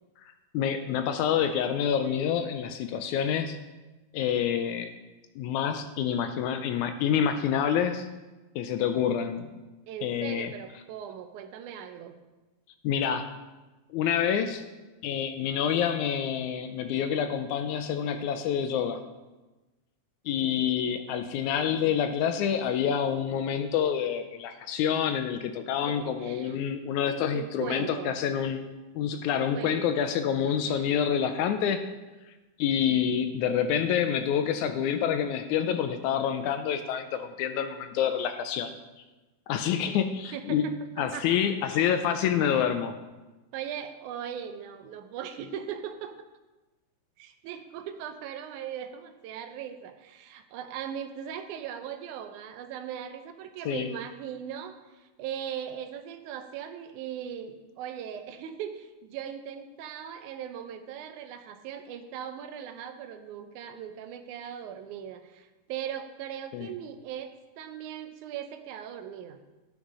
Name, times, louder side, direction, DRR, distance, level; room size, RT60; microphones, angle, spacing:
voice 1, 0.5-3.6 4.1-4.9 5.4-8.1 8.6-9.4 10.0-10.5 12.8-13.3 13.9-14.6 15.0-19.0 20.3-28.7 29.0-31.8 32.6-38.7 39.5-40.7 41.0-43.0 53.7-53.9 66.5-66.7, left 8 dB, 80° left, 8 dB, 1.9 m, -27 dB
voice 2, 9.9-12.1 25.7-26.6 27.3-28.2 29.4-29.9 30.5-31.2 39.9-40.0 40.3-41.3 41.7-41.9 42.4-42.7 43.5-46.2 47.2-69.4, right 9 dB, 80° right, 7 dB, 2.1 m, -39 dB
12.0 x 5.1 x 5.4 m, 1.1 s
omnidirectional pair, 3.6 m